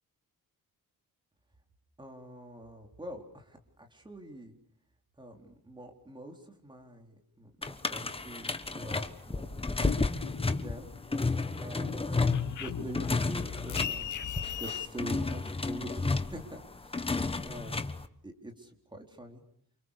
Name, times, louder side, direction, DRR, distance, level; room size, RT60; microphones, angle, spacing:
voice 1, 2.0-4.5 5.2-10.1 10.6-10.9 11.3-14.1 14.6-18.0 18.2-19.4, right 1 dB, 15° right, 3 dB, 4.3 m, -45 dB
sound 1, 7.6-18.0, left 3 dB, 15° left, 1.3 m, -32 dB
sound 2, 9.4-11.1 11.5-14.9, left 9 dB, 60° left, 1.2 m, -38 dB
29.0 x 27.5 x 6.9 m, 0.66 s
wide cardioid pair, 145°, 34 cm